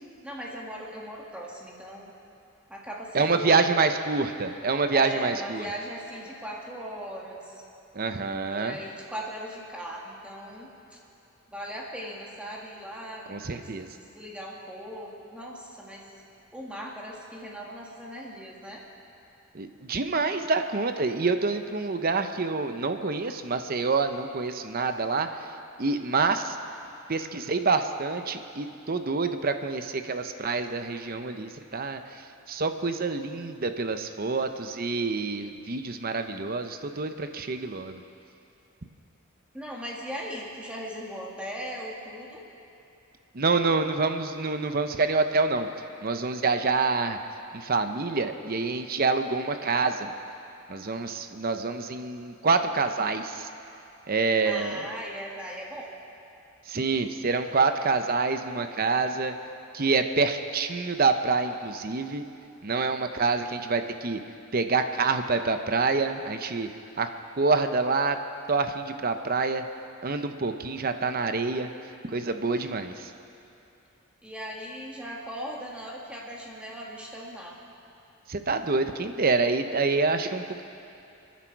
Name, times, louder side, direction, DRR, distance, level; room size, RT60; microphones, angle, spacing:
voice 1, 0.2-2.1 2.7-3.7 4.9-7.6 8.4-11.0 11.5-16.1 16.5-18.8 39.5-42.4 54.5-55.9 74.2-77.6, equal, 5° right, -3 dB, 1.9 m, -39 dB
voice 2, 3.1-5.6 7.9-8.8 13.3-13.9 19.5-25.3 25.8-26.6 27.1-32.0 32.5-38.0 43.3-45.7 46.0-47.2 47.5-50.1 50.7-53.5 54.1-54.9 56.7-59.3 59.7-62.2 62.6-64.2 64.5-66.7 67.0-67.1 67.4-68.2 68.5-69.6 70.0-71.7 72.0-73.1 78.3-80.6, right 4 dB, 45° right, 8 dB, 0.8 m, -27 dB
29.5 x 10.5 x 4.7 m, 2.8 s
head